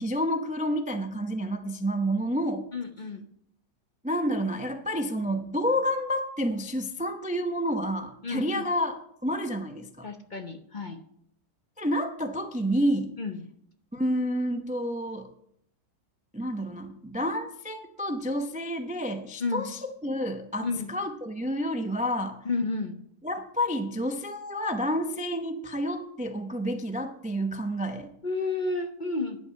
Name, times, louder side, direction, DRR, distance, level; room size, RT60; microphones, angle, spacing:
voice 1, 0.0-2.7 4.0-8.9 9.2-10.1 11.8-13.1 13.9-15.3 16.3-22.4 23.2-28.1, equal, 10° right, 6 dB, 0.3 m, -29 dB
voice 2, 2.7-3.2 8.2-8.6 10.0-11.0 13.2-13.4 19.4-19.7 20.6-20.9 22.4-23.0 28.2-29.4, left 3 dB, 40° left, 5 dB, 0.8 m, -31 dB
10.5 x 8.2 x 5.6 m, 0.71 s
omnidirectional pair, 1.7 m